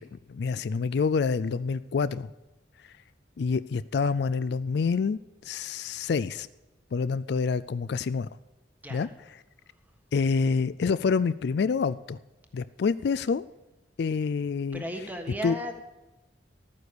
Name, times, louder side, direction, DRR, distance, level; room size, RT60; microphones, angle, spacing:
voice 1, 0.1-2.3 3.4-5.2 5.4-6.5 6.9-8.3 8.9-9.1 10.1-12.2 12.5-13.4 14.0-14.8 15.4-15.5, left 5 dB, 60° left, 16 dB, 0.4 m, -27 dB
voice 2, 14.7-15.7, equal, 10° right, 5 dB, 1.4 m, -35 dB
13.0 x 9.3 x 6.7 m, 1.0 s
head